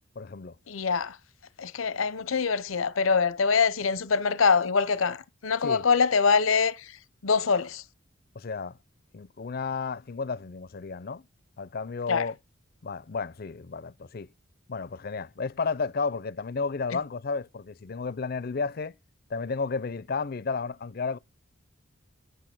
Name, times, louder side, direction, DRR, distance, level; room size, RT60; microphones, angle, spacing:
voice 1, 0.2-0.6 5.6-5.8 8.4-8.8 9.1-11.3 11.6-12.4 12.8-14.3 14.7-18.9 19.3-21.2, left 4 dB, 50° left, 0.5 m, -32 dB
voice 2, 0.7-1.2 1.6-7.0 7.2-7.8 12.1-12.3 16.9-17.0, left 5 dB, 90° left, 0.8 m, -24 dB
9.4 x 8.5 x 6.0 m
head